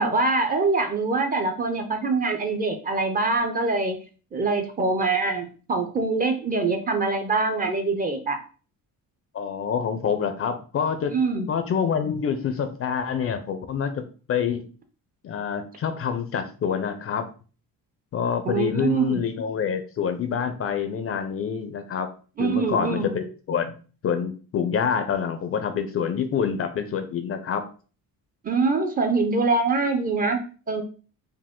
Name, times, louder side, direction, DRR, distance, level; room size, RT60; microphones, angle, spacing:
voice 1, 0.0-4.0 4.3-8.4 11.1-11.5 18.5-19.2 22.4-23.2 28.4-30.4 30.7-30.8, right 3 dB, 25° right, 5 dB, 0.5 m, -24 dB
voice 2, 9.3-11.1 11.5-14.0 14.3-14.6 15.2-17.2 18.1-22.1 22.4-23.7 24.0-27.6, left 7 dB, 40° left, 9 dB, 0.5 m, -26 dB
4.9 x 2.5 x 3.6 m, 0.38 s
cardioid pair, 160°, 36 cm